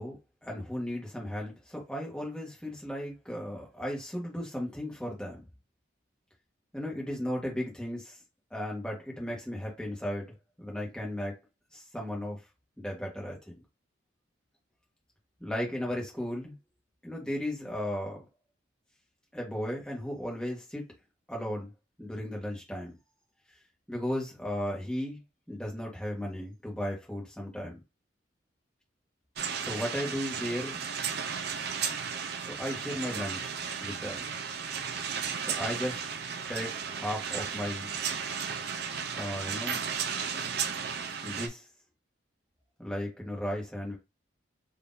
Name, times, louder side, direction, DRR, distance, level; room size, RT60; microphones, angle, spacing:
voice 1, 0.0-5.4 6.7-8.2 8.5-11.3 11.7-12.4 12.8-13.5 15.4-16.6 17.0-18.2 19.3-20.8 21.3-21.7 22.0-22.9 23.9-25.2 25.5-27.8 29.6-30.8 32.4-34.2 35.4-36.1 36.5-37.9 39.1-39.8 41.2-41.7 42.8-44.0, equal, 5° left, 1.2 m, -35 dB
sound 1, 29.4-41.5, right 6 dB, 55° right, 0.5 m, -34 dB
3.7 x 2.8 x 2.6 m
head